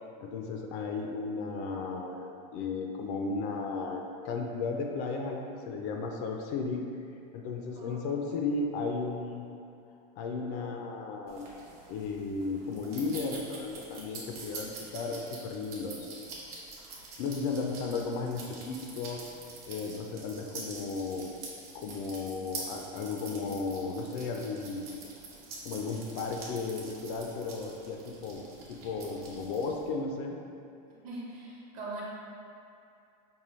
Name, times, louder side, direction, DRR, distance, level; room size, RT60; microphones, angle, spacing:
voice 1, 0.2-6.8 7.3-9.5 10.2-11.5 11.9-16.1 17.2-19.2 19.7-21.3 21.7-24.9 25.6-28.4 28.7-30.4, left 4 dB, 50° left, 2 dB, 0.4 m, -34 dB
sound 1, 11.3-29.9, right 3 dB, 60° right, 1.0 m, -46 dB
voice 2, 31.0-32.0, right 2 dB, 40° right, -5 dB, 0.9 m, -41 dB
5.3 x 2.2 x 3.1 m, 2.5 s
supercardioid pair, 150°, 21 cm